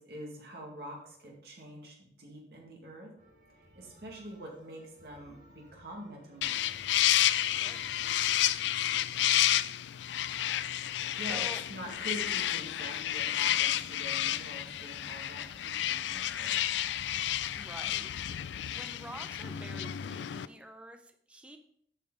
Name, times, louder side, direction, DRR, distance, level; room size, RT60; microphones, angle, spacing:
voice 1, 0.0-3.1 3.8-6.8 11.2-16.7, right 1 dB, 65° right, -1 dB, 2.1 m, -45 dB
sound 1, 3.2-8.5, equal, 40° right, 2.5 m, -59 dB
sound 2, 6.4-20.4, left 12 dB, 80° left, 0.3 m, -31 dB
voice 2, 7.5-7.8 11.3-11.6 17.6-18.1 18.7-21.6, right 1 dB, 5° right, 6 dB, 0.5 m, -47 dB
8.7 x 5.7 x 4.0 m, 0.67 s
head